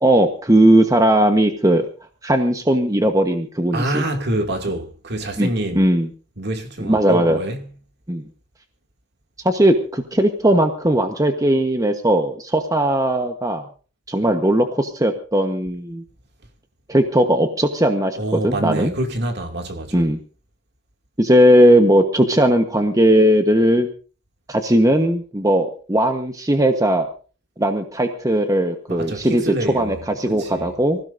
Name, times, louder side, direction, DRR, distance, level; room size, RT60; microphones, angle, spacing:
voice 1, 0.0-1.9 2.2-4.0 5.4-5.5 5.7-6.1 6.8-7.4 8.1-8.2 9.4-13.6 14.1-16.0 16.9-18.9 19.9-20.2 21.2-23.9 24.5-27.1 27.6-31.0, right 1 dB, 15° right, 1.2 m, -18 dB
voice 2, 3.7-5.9 6.4-7.6 18.2-20.1 28.9-30.0 30.3-30.7, right 1 dB, 55° right, 2.6 m, -26 dB
25.0 x 16.0 x 2.7 m
head